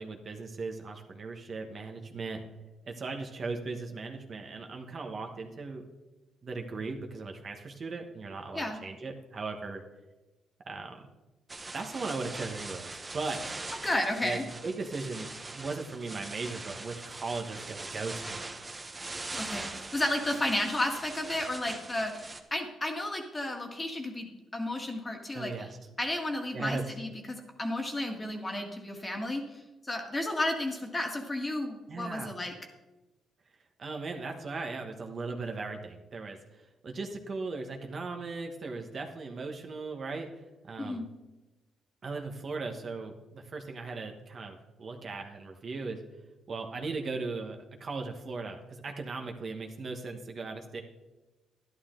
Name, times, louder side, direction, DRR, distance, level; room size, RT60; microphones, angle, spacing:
voice 1, 0.0-2.4 2.9-5.8 6.4-9.8 10.6-11.0 11.7-13.6 14.2-15.3 15.5-18.5 25.3-25.8 26.5-26.8 31.9-32.3 33.8-40.3 40.6-41.0 42.0-46.0 46.5-50.8, right 3 dB, 45° right, 3 dB, 1.3 m, -38 dB
sound 1, 11.5-22.4, right 2 dB, 20° right, 1.0 m, -42 dB
voice 2, 13.8-14.4 19.3-22.2 22.5-24.3 24.5-25.7 26.0-29.4 29.8-32.5 40.8-41.0, left 1 dB, 20° left, 3 dB, 1.8 m, -32 dB
11.5 x 11.5 x 3.8 m, 1.1 s
cardioid pair, 90°, 0 cm